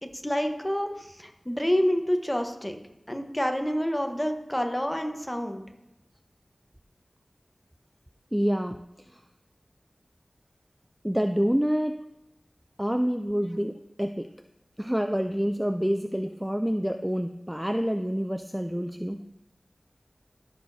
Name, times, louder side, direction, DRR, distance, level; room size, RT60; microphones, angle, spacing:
voice 1, 0.0-2.8 3.1-5.6, equal, 10° left, 4 dB, 1.0 m, -28 dB
voice 2, 8.3-8.8 9.1-9.2 11.0-12.0 12.8-14.3 14.8-19.2, equal, 5° right, 7 dB, 0.3 m, -27 dB
14.0 x 6.6 x 2.7 m, 0.88 s
wide cardioid pair, 70°, 0 cm